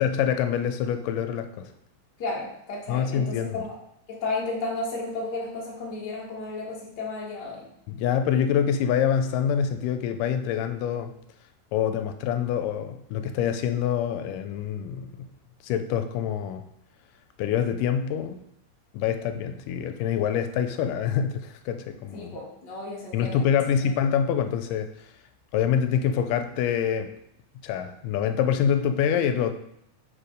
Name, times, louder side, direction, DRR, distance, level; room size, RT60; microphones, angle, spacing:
voice 1, 0.0-1.7 2.9-3.6 7.9-11.1 11.7-15.1 15.6-16.7 17.4-18.4 18.9-22.3 23.1-24.9 25.5-27.1 27.6-29.5, left 8 dB, 85° left, 8 dB, 2.1 m, -25 dB
voice 2, 2.2-3.7 4.1-7.7 22.1-23.4, left 3 dB, 45° left, -4 dB, 1.6 m, -33 dB
4.9 x 4.2 x 5.0 m, 0.76 s
omnidirectional pair, 3.7 m